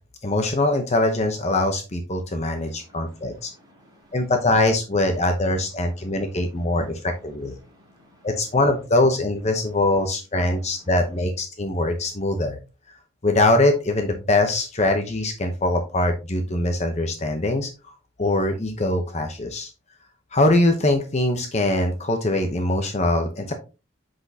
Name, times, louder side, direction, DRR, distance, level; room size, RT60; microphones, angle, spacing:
voice 1, 0.2-3.5 4.1-7.6 8.2-12.6 13.2-17.7 18.2-19.7 20.3-23.5, left 2 dB, 30° left, 0.8 m, -22 dB
voice 2, 2.5-4.3 5.8-8.5 9.6-9.8 10.4-10.9, equal, 20° right, 2.9 m, -56 dB
7.7 x 6.1 x 2.8 m
head